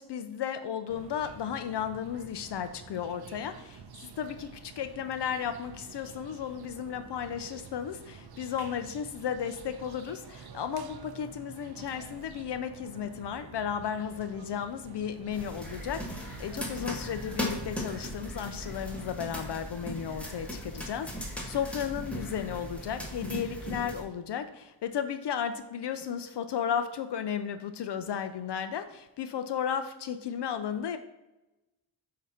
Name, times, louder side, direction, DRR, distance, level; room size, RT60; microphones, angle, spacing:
voice 1, 0.0-31.0, left 8 dB, 65° left, 10 dB, 0.5 m, -34 dB
sound 1, 0.9-19.6, right 6 dB, 60° right, 0.7 m, -49 dB
sound 2, 15.3-24.0, equal, 5° left, 1.1 m, -38 dB
8.2 x 2.8 x 5.6 m, 0.99 s
wide cardioid pair, 140°, 45 cm